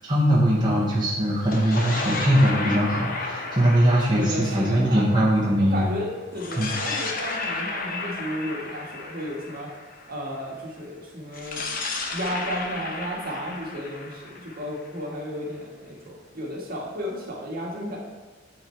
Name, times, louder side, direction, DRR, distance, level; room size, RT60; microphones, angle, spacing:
voice 1, 0.0-5.8 6.5-6.7, equal, 25° right, -6 dB, 1.3 m, -21 dB
sound 1, 1.3-5.7 6.3-10.3 11.3-15.1, left 3 dB, 45° left, 0.9 m, -33 dB
voice 2, 4.1-5.2 5.7-9.7 10.1-11.7 12.1-18.0, equal, 50° right, -2 dB, 1.7 m, -33 dB
9.6 x 4.6 x 4.5 m, 1.4 s
head